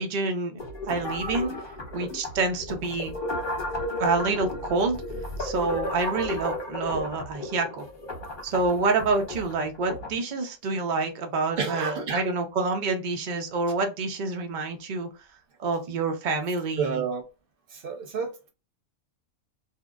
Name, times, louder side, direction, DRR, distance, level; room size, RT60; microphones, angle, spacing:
voice 1, 0.0-1.5 1.9-3.2 4.0-5.0 5.4-7.9 8.4-15.1 15.6-17.0, right 3 dB, 90° right, 0.4 m, -27 dB
sound 1, 0.6-10.2, left 1 dB, 45° left, 0.9 m, -34 dB
voice 2, 11.6-12.2 16.8-17.2 17.7-18.5, right 5 dB, 50° right, 0.7 m, -30 dB
2.7 x 2.1 x 2.3 m
omnidirectional pair, 1.5 m